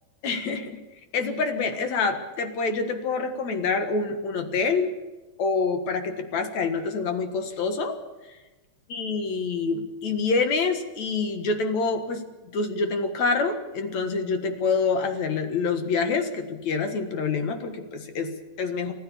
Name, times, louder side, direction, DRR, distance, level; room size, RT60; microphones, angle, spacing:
voice 1, 0.2-0.8 1.1-4.9 5.4-8.0 8.3-8.4 8.9-12.2 12.5-18.9, left 4 dB, 60° left, 7 dB, 2.8 m, -26 dB
29.5 x 13.0 x 7.1 m, 1.2 s
omnidirectional pair, 3.7 m